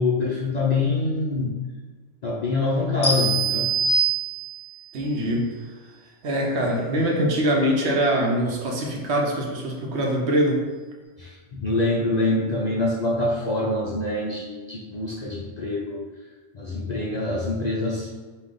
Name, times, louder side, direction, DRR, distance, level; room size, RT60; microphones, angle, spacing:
voice 1, 0.0-1.6 2.2-3.8 11.2-16.0 16.5-18.1, left 2 dB, 50° left, -4 dB, 0.5 m, -25 dB
sound 1, 3.0-4.8, right 4 dB, 20° left, 0.8 m, -23 dB
voice 2, 4.9-5.5 6.2-10.6, equal, 65° right, 0 dB, 1.0 m, -23 dB
5.0 x 2.4 x 3.7 m, 1.4 s
omnidirectional pair, 1.3 m